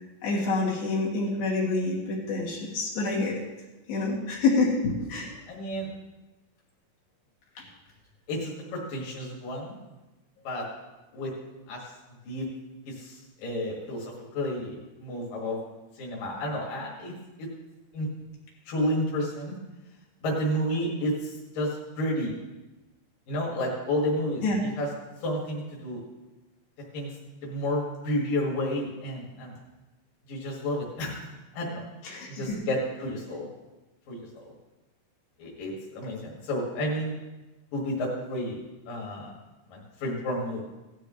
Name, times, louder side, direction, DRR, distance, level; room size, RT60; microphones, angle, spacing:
voice 1, 0.2-3.4 3.9-5.3 24.4-24.6 32.0-32.6, left 3 dB, 85° left, -4 dB, 4.3 m, -27 dB
voice 2, 5.5-5.9 8.3-9.8 10.5-10.7 11.1-11.3 11.7-11.8 12.3-12.5 12.9-14.7 15.0-15.6 16.0-17.1 17.4-17.5 17.9-18.1 18.7-19.5 20.2-21.7 22.0-22.3 23.3-24.9 25.2-26.0 26.9-27.1 27.4-29.5 30.3-31.2 31.5-31.8 32.3-33.5 34.1-34.4 35.4-37.1 37.7-39.3 39.7-40.6, equal, 70° left, -4 dB, 3.7 m, -31 dB
18.0 x 12.0 x 3.2 m, 1.1 s
omnidirectional pair, 4.1 m